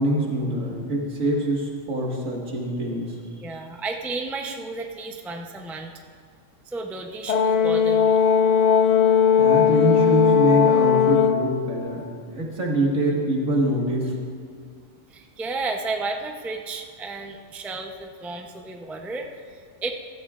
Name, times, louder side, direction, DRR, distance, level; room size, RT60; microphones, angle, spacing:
voice 1, 0.0-3.1 9.4-14.1, right 1 dB, 80° right, -2 dB, 2.1 m, -24 dB
voice 2, 3.4-5.9 6.7-8.2 15.1-19.9, right 3 dB, ahead, 3 dB, 0.4 m, -32 dB
Brass instrument, 7.3-11.5, left 7 dB, 70° left, 0.4 m, -18 dB
15.5 x 14.0 x 2.5 m, 2.2 s
omnidirectional pair, 1.3 m